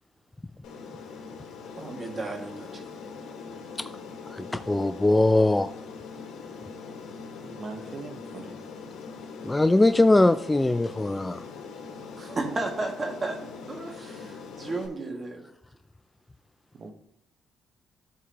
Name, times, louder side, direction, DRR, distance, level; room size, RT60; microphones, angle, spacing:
Aircraft, 0.6-14.9, left 5 dB, 85° left, 1.6 m, -42 dB
voice 1, 1.8-2.8 12.2-15.4, right 2 dB, 35° right, 3 dB, 2.0 m, -33 dB
voice 2, 4.3-5.7 9.4-11.4, left 2 dB, 15° left, 12 dB, 0.3 m, -21 dB
voice 3, 7.4-8.6 16.7-16.9, right 3 dB, 55° right, 5 dB, 1.1 m, -41 dB
13.5 x 4.7 x 2.9 m, 0.75 s
cardioid pair, 90°, 0 cm